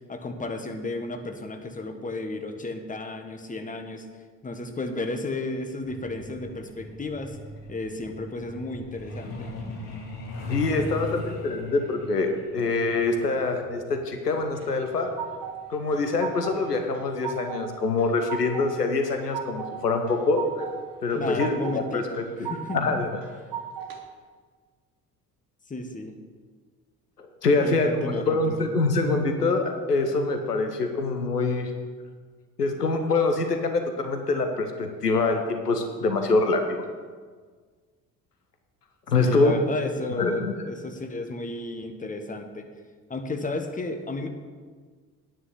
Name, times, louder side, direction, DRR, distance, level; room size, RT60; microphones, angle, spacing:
voice 1, 0.1-4.1 4.4-7.4 7.7-9.5 21.1-22.0 22.4-22.8 25.7-26.1 27.6-28.6 39.2-42.7 43.1-44.3, left 2 dB, 15° left, 6 dB, 1.3 m, -33 dB
Truck, 5.9-18.2 19.4-19.6 19.9-20.1 20.5-20.8 21.1-21.2 21.7-21.8, left 1 dB, 65° left, 2.2 m, -40 dB
voice 2, 10.5-15.1 15.7-20.6 21.0-23.1 27.4-31.7 32.6-36.8 39.1-39.5 40.2-40.5, left 3 dB, 85° left, 5 dB, 0.9 m, -25 dB
sound 1, 14.6-15.6 15.9-16.6 16.9-17.6 18.0-18.7 19.0-19.7 20.1-20.8 21.1-21.8 22.1-22.8 23.2-24.0, right 9 dB, 45° right, 1.8 m, -35 dB
9.4 x 6.1 x 8.4 m, 1.6 s
figure-of-eight pair, 50°, 46 cm